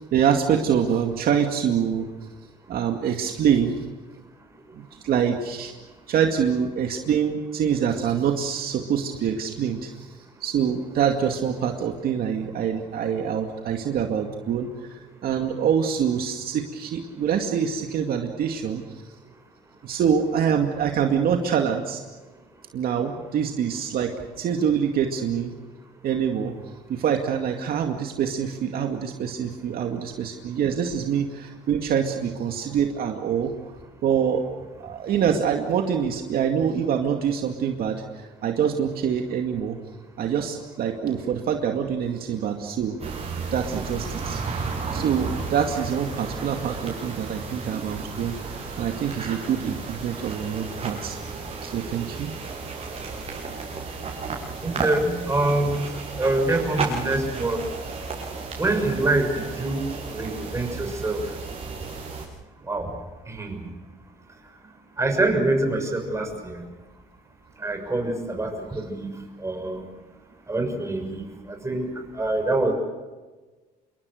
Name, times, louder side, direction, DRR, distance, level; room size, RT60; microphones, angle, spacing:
voice 1, 0.0-2.1 2.7-3.8 4.7-5.7 6.1-10.1 10.4-18.8 19.8-22.0 22.7-25.6 26.0-26.5 26.9-33.5 34.0-34.5 34.8-39.8 40.2-43.0 43.5-44.6 44.9-48.4 48.8-51.2 51.6-52.3 54.2-54.3, right 8 dB, 60° right, 3 dB, 2.3 m, -25 dB
sound 1, 43.0-62.2, right 4 dB, 35° right, 7.7 m, -33 dB
voice 2, 54.6-55.8 56.2-57.6 58.6-59.8 60.1-61.2 62.7-62.9 63.3-63.6 65.0-66.6 67.6-69.1 69.4-69.8 70.5-71.9 72.1-72.7, right 2 dB, 15° right, 4 dB, 6.6 m, -25 dB
27.5 x 23.5 x 6.6 m, 1.3 s
cardioid pair, 110°, 17 cm